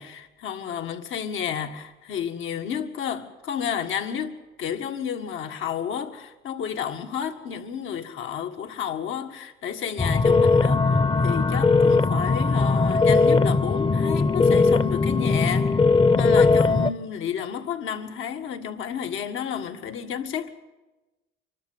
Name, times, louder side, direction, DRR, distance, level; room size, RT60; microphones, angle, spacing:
voice 1, 0.0-15.8 16.2-20.5, left 8 dB, 80° left, 1.8 m, -31 dB
sound 1, 10.0-16.9, left 4 dB, 25° left, 0.7 m, -19 dB
25.5 x 12.5 x 9.4 m
cardioid pair, 90°, 20 cm